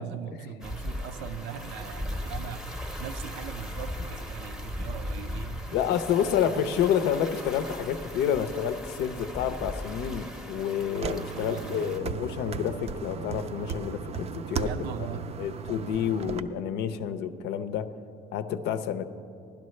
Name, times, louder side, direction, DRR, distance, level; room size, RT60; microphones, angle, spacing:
voice 1, 0.0-5.7 6.2-6.3 6.6-6.7 11.3-11.9 14.6-15.3, right 8 dB, 85° right, 10 dB, 0.6 m, -40 dB
sound 1, 0.6-12.0, left 1 dB, 5° right, 0.7 m, -38 dB
voice 2, 5.7-14.7 15.4-17.9 18.3-19.0, left 8 dB, 85° left, 10 dB, 0.6 m, -29 dB
sound 2, 10.9-16.4, right 6 dB, 40° right, 0.4 m, -36 dB
15.5 x 12.0 x 3.2 m, 2.5 s
cardioid pair, 110°, 17 cm